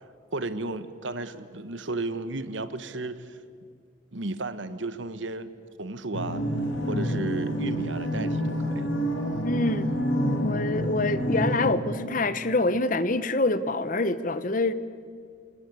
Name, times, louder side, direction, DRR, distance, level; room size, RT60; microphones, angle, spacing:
voice 1, 0.3-3.4 4.1-5.5 5.8-6.4 6.9-8.9, right 2 dB, 75° right, 12 dB, 1.4 m, -34 dB
sound 1, 6.1-11.7, equal, 80° left, 4.0 m, -28 dB
voice 2, 9.4-9.9 10.4-14.7, left 2 dB, 45° left, 14 dB, 1.0 m, -26 dB
28.0 x 20.5 x 8.3 m, 2.2 s
head